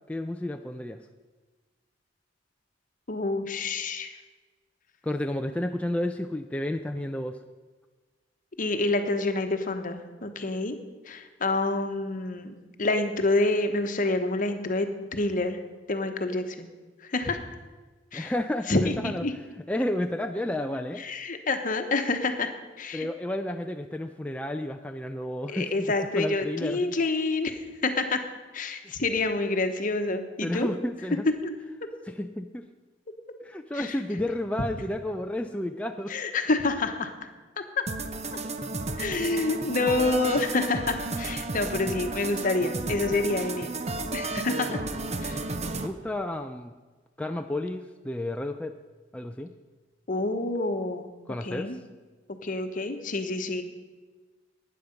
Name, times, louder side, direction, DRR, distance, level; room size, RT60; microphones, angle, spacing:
voice 1, 0.1-1.0 5.0-7.4 18.1-19.2 19.7-21.0 22.9-25.7 26.2-26.9 28.8-29.0 30.4-31.2 32.1-32.6 33.4-36.1 44.5-45.5 45.8-46.7 47.2-48.7 49.1-49.5 51.3-51.8, left 1 dB, 5° left, 5 dB, 0.4 m, -31 dB
voice 2, 3.1-4.1 8.6-10.8 11.1-15.6 15.9-16.7 17.0-17.4 18.1-18.3 18.7-19.3 21.0-22.5 22.8-23.1 25.5-28.2 28.5-30.7 31.4-31.5 33.7-34.0 36.1-37.1 39.0-43.7 44.1-44.8 45.2-45.4 50.1-51.1 51.4-51.8 52.4-53.6, left 2 dB, 45° left, 7 dB, 1.1 m, -28 dB
sound 1, 37.9-45.9, right 3 dB, 35° right, 0.8 m, -33 dB
12.5 x 9.5 x 5.2 m, 1.3 s
head